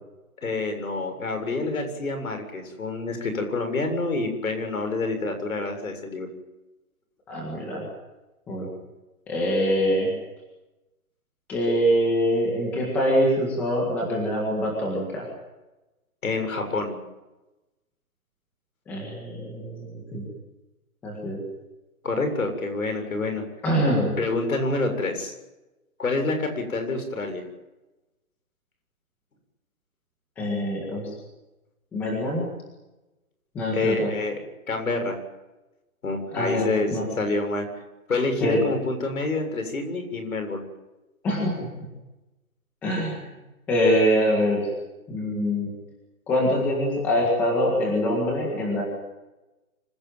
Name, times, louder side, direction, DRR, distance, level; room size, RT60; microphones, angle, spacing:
voice 1, 0.4-6.3 16.2-17.0 22.0-23.4 24.2-25.3 26.0-27.4 33.7-34.4 34.7-35.2 36.0-37.7 38.1-40.6, left 3 dB, 65° left, 6 dB, 7.4 m, -27 dB
voice 2, 7.3-7.9 8.5-8.7 9.3-10.1 11.5-15.3 18.9-20.3 21.0-21.4 23.6-24.1 30.4-31.2 31.9-32.5 33.6-34.1 36.3-37.1 38.4-38.6 41.2-41.6 42.8-43.3 43.7-44.7 45.1-45.7 46.3-48.8, equal, 5° left, -2 dB, 1.7 m, -24 dB
25.5 x 17.0 x 9.2 m, 1.0 s
hypercardioid pair, 180°, 45 cm